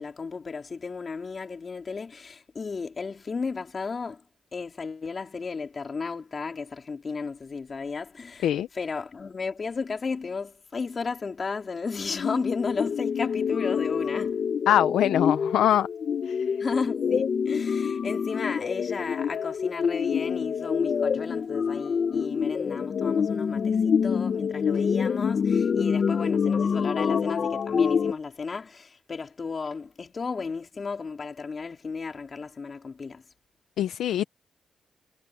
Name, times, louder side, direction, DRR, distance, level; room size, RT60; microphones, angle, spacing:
voice 1, 0.0-4.2 4.5-14.4 16.6-33.2, left 4 dB, 45° left, 3.7 m, -34 dB
sound 1, 12.1-28.1, left 6 dB, 60° left, 1.6 m, -26 dB
voice 2, 14.7-15.9 16.3-16.5 33.8-34.2, left 11 dB, 90° left, 0.7 m, -23 dB
cardioid pair, 65°, 0 cm